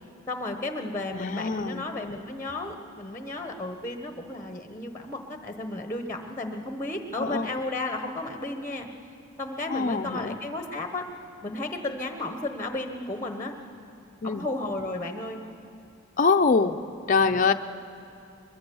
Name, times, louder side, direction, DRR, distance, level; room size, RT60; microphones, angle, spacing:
voice 1, 0.3-8.9 9.4-11.0 11.4-13.5 14.2-15.4, left 2 dB, 15° left, 6 dB, 1.0 m, -33 dB
voice 2, 1.1-1.9 7.2-7.5 9.7-10.4 14.2-14.5 16.2-16.8 17.1-17.5, left 4 dB, 40° left, 6 dB, 0.6 m, -24 dB
22.5 x 22.0 x 7.0 m, 2.8 s
head